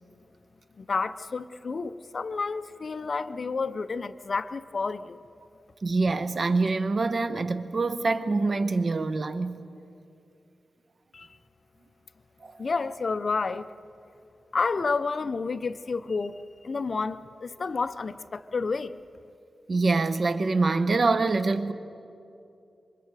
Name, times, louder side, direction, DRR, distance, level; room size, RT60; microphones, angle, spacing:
voice 1, 0.8-5.2 11.1-11.3 12.6-13.7 14.5-19.0, left 4 dB, 50° left, 0.6 m, -30 dB
voice 2, 5.8-9.6 12.4-12.7 19.7-21.7, right 3 dB, 50° right, 0.9 m, -25 dB
27.5 x 24.0 x 4.8 m
wide cardioid pair, 115°, 0 cm